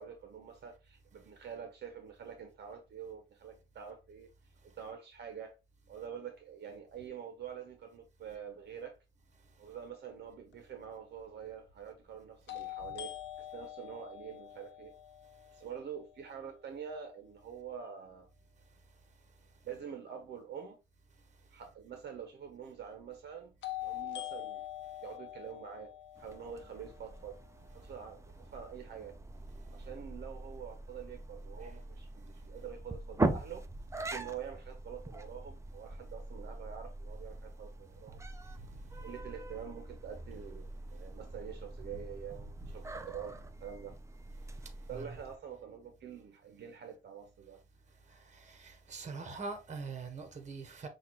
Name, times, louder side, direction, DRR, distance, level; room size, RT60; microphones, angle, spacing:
voice 1, 0.0-4.3 4.6-5.5 5.9-9.0 9.6-14.9 15.5-18.3 19.6-20.8 21.5-23.5 23.8-24.6 25.0-25.9 26.2-27.4 27.7-29.2 29.7-33.6 34.0-38.2 39.0-43.3 43.6-44.0 44.9-47.6, right 8 dB, 60° right, 0.9 m, -46 dB
sound 1, 10.5-10.6 12.5-16.4 23.6-27.6, left 15 dB, 65° left, 0.7 m, -44 dB
sound 2, 26.2-45.4, right 2 dB, 15° right, 0.5 m, -42 dB
voice 2, 48.5-50.9, right 4 dB, 35° right, 1.2 m, -43 dB
5.7 x 2.5 x 3.0 m
cardioid pair, 90°, 20 cm